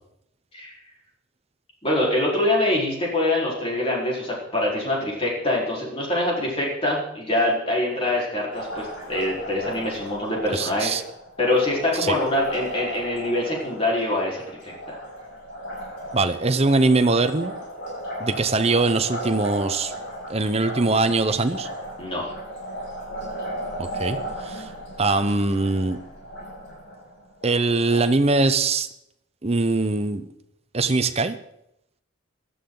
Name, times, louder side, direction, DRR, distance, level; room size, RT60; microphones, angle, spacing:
voice 1, 1.8-11.0 11.4-15.0 22.0-22.3, left 1 dB, 30° left, -4 dB, 4.4 m, -24 dB
Liquid, 8.5-28.0, equal, 60° left, 7.4 m, -36 dB
voice 2, 10.5-11.0 12.0-12.2 16.1-17.5 18.2-19.9 20.3-21.7 23.8-24.2 24.4-24.7 25.0-26.0 27.4-28.9 29.4-30.3 30.7-31.4, right 3 dB, 30° right, 9 dB, 0.8 m, -22 dB
17.0 x 12.5 x 3.9 m, 0.79 s
head